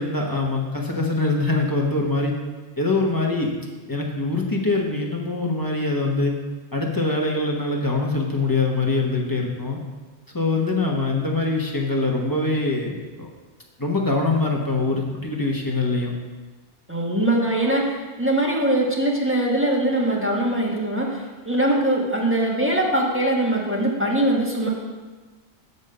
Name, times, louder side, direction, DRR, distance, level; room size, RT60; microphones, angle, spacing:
voice 1, 0.0-2.3 2.8-3.5 3.9-6.3 6.7-9.8 10.3-13.3 13.8-16.1, left 3 dB, 20° left, -1 dB, 1.0 m, -23 dB
voice 2, 16.9-24.7, right 1 dB, 10° right, -3 dB, 1.3 m, -22 dB
6.4 x 5.4 x 6.6 m, 1.3 s
omnidirectional pair, 1.2 m